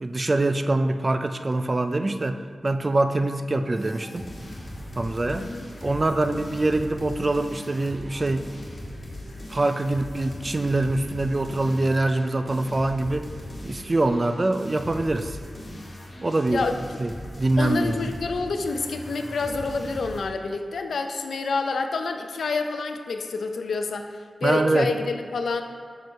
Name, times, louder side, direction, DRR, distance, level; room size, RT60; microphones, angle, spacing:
voice 1, 0.0-2.4 2.6-4.3 5.0-5.5 5.8-8.4 9.5-13.3 13.6-15.4 16.2-16.6 17.0-17.1 17.4-18.0 24.4-24.9, right 2 dB, 30° right, 9 dB, 0.3 m, -24 dB
sound 1, 3.8-20.3, left 1 dB, 30° left, 1.6 m, -39 dB
voice 2, 17.6-24.1 24.4-25.6, left 4 dB, 80° left, 6 dB, 0.5 m, -28 dB
5.9 x 5.2 x 4.5 m, 2.1 s
wide cardioid pair, 150°, 0 cm